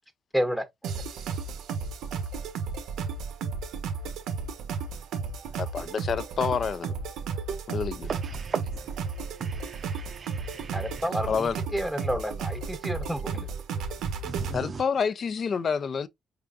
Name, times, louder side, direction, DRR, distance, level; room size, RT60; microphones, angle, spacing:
voice 1, 0.3-0.6 10.7-13.5, equal, ahead, 0.8 m, -30 dB
sound 1, 0.8-14.6, right 5 dB, 85° right, 0.9 m, -33 dB
voice 2, 5.6-6.9 7.7-8.1 11.2-11.6 14.5-16.1, left 6 dB, 50° left, 0.5 m, -28 dB
voice 3, 8.1-8.6 9.4-10.8 14.2-14.8, right 5 dB, 45° right, 0.5 m, -36 dB
4.6 x 3.7 x 2.4 m
cardioid pair, 90°, 0 cm